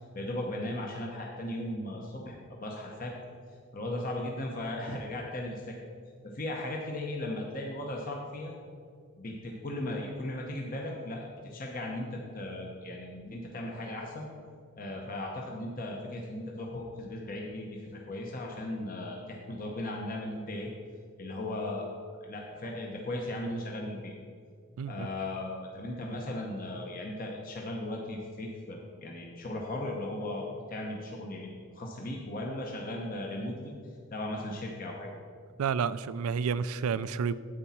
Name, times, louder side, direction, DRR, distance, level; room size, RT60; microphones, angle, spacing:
voice 1, 0.0-3.2 3.7-5.8 6.2-8.5 9.2-14.3 14.8-20.7 21.2-21.9 22.2-24.1 24.8-31.5 31.7-33.7 34.1-35.2, left 1 dB, 40° left, 0 dB, 0.9 m, -37 dB
voice 2, 24.8-25.1 35.6-37.3, right 6 dB, 85° right, 16 dB, 0.4 m, -30 dB
9.8 x 8.2 x 4.3 m, 2.2 s
head